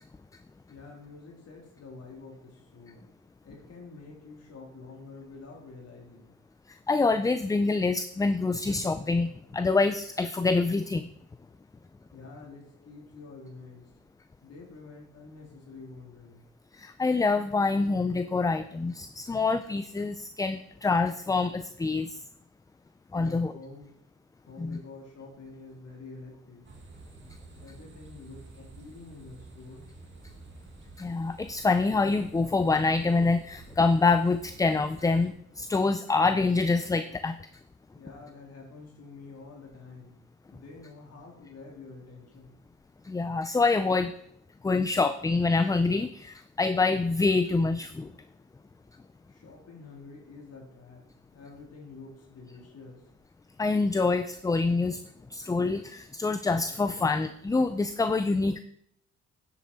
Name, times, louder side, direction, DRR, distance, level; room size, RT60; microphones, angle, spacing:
voice 1, 0.7-3.1 3.4-6.3 12.1-13.9 14.4-16.4 23.1-24.0 24.4-26.7 27.6-29.9 38.0-40.2 40.5-42.6 49.3-51.0 51.3-53.1, left 3 dB, 55° left, -1 dB, 3.2 m, -48 dB
voice 2, 6.9-11.1 16.7-22.1 23.1-23.5 24.6-24.8 31.0-37.4 43.0-44.1 44.6-48.1 53.6-55.0 55.3-58.6, left 3 dB, 10° left, 11 dB, 0.4 m, -26 dB
sound 1, 26.6-35.3, right 3 dB, 40° right, 2.1 m, -50 dB
9.8 x 7.8 x 4.3 m, 0.71 s
cardioid pair, 90°, 30 cm